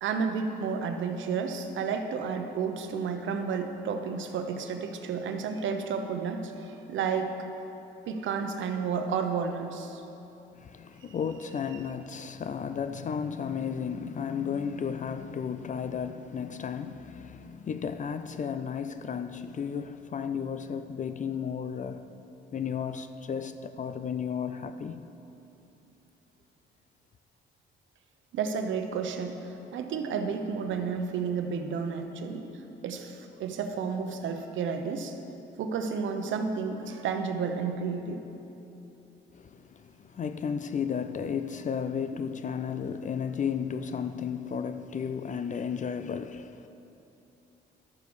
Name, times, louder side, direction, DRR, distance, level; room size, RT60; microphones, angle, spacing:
voice 1, 0.0-7.4 8.1-10.0 28.3-32.5 32.8-35.2 35.6-38.2, right 5 dB, 75° right, 0.9 m, -31 dB
voice 2, 10.6-22.1 22.5-25.0 39.3-46.7, left 7 dB, 40° left, 0.4 m, -33 dB
12.0 x 7.0 x 4.8 m
cardioid pair, 90°, 20 cm